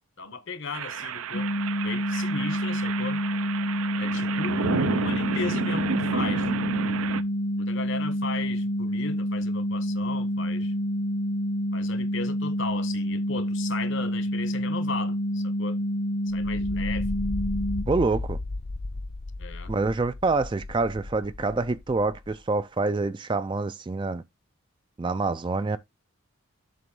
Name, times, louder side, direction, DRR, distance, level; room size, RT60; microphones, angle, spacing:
voice 1, 0.2-1.5 1.8-3.2 4.0-6.5 7.6-10.7 11.7-15.9 16.3-17.1 19.4-19.7, left 4 dB, 55° left, 1.0 m, -36 dB
sound 1, 0.7-7.2, right 5 dB, 75° right, 0.5 m, -31 dB
sound 2, 1.3-17.8, equal, 70° left, 1.3 m, -28 dB
sound 3, 16.3-22.4, left 2 dB, 40° left, 0.5 m, -35 dB
voice 2, 17.9-18.4 19.7-24.2 25.0-25.8, right 3 dB, 20° right, 0.3 m, -26 dB
7.6 x 3.1 x 5.3 m
head